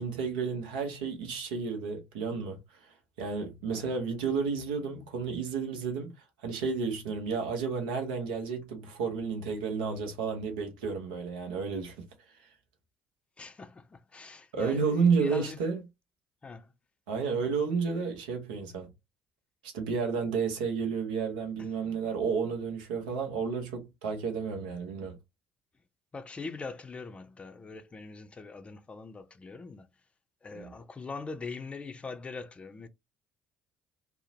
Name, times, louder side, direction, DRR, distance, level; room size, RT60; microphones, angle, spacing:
voice 1, 0.0-6.1 6.4-12.1 14.5-15.8 17.1-18.9 19.6-25.2 30.5-30.7, right 5 dB, 75° right, 0.7 m, -31 dB
voice 2, 13.4-15.6 16.4-16.7 21.6-21.7 26.1-29.9 30.4-32.9, left 4 dB, 25° left, 0.5 m, -42 dB
2.7 x 2.0 x 2.6 m
figure-of-eight pair, 50°, 5 cm